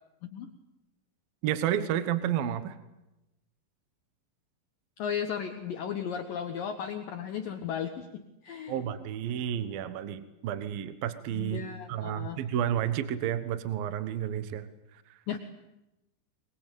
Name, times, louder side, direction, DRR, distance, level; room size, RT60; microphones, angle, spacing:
voice 1, 1.4-2.8 8.7-11.6 11.9-14.7, right 10 dB, 65° right, 12 dB, 2.6 m, -31 dB
voice 2, 5.0-8.8 11.3-12.4 15.3-15.4, left 8 dB, 65° left, 6 dB, 2.4 m, -35 dB
23.0 x 22.5 x 9.2 m, 0.94 s
omnidirectional pair, 5.2 m